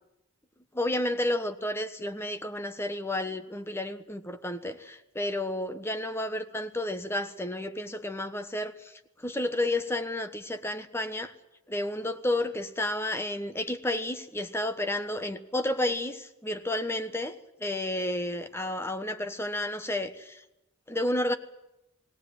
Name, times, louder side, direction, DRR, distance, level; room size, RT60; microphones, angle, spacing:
voice 1, 0.7-11.3 11.7-20.4 20.9-21.3, left 1 dB, 10° left, 1.2 m, -31 dB
18.5 x 18.0 x 9.4 m
head